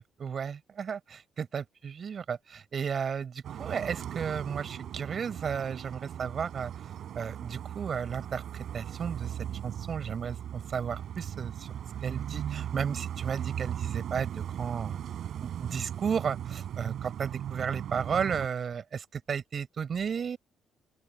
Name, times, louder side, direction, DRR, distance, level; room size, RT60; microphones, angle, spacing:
voice 1, 0.0-6.7 7.2-11.7 12.0-15.0 15.4-20.4, right 7 dB, 50° right, 5.7 m, -34 dB
sound 1, 3.4-18.5, right 10 dB, 70° right, 6.6 m, -38 dB
open air
cardioid pair, 90°, 0 cm